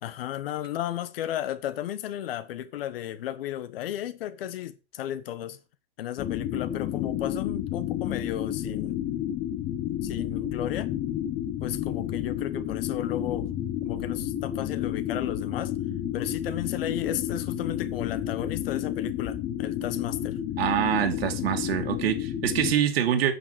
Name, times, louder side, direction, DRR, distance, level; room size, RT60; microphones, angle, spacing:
voice 1, 0.0-5.6 6.0-9.0 10.0-10.9 11.6-13.5 13.8-15.7 16.1-20.4, left 12 dB, 70° left, 1.4 m, -34 dB
sound 1, 6.2-22.8, left 11 dB, 25° left, 1.4 m, -31 dB
voice 2, 20.6-23.3, right 10 dB, 75° right, 2.6 m, -25 dB
9.3 x 7.2 x 6.8 m
supercardioid pair, 165°, 30 cm